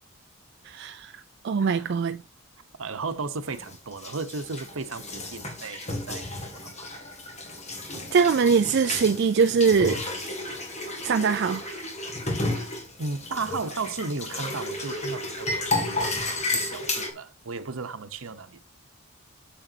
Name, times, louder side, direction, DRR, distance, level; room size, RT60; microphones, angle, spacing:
voice 1, 0.6-1.1 1.4-2.2 8.1-10.0 11.0-11.8, right 5 dB, 55° right, 0.4 m, -22 dB
voice 2, 1.6-1.9 2.8-6.9 13.0-18.6, right 4 dB, 80° right, 0.9 m, -35 dB
sound 1, 3.4-17.1, left 2 dB, 35° left, 2.2 m, -32 dB
8.9 x 7.2 x 2.8 m
head